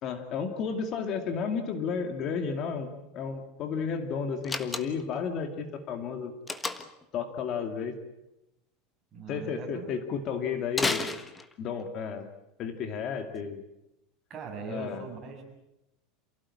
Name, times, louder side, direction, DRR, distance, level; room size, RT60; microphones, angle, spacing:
voice 1, 0.0-2.9 3.1-6.3 7.1-7.9 9.3-11.1 11.6-12.3 12.6-13.6 14.7-15.1, left 6 dB, 35° left, 7 dB, 2.4 m, -32 dB
Slam, 4.4-5.2 6.5-7.0 10.7-11.8, left 3 dB, 10° left, 1.5 m, -32 dB
voice 2, 9.1-9.9 14.3-15.4, right 4 dB, 25° right, 1 dB, 7.4 m, -40 dB
28.0 x 17.0 x 9.9 m, 0.89 s
supercardioid pair, 155°, 0 cm